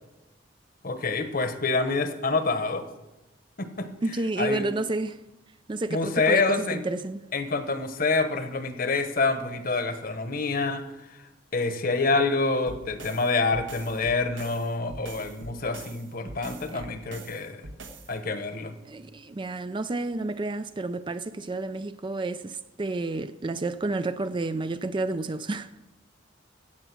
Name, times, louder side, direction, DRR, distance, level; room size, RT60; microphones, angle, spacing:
voice 1, 0.8-2.9 3.6-3.9 4.4-4.6 5.9-6.8 7.3-10.8 11.5-17.6 18.1-18.7, left 3 dB, 50° left, 1.2 m, -27 dB
voice 2, 4.0-5.2 5.7-7.2 16.7-16.8 18.9-25.8, right 2 dB, 25° right, 0.4 m, -30 dB
sound 1, 12.7-18.1, right 2 dB, 80° right, 1.5 m, -43 dB
15.0 x 9.0 x 6.1 m
head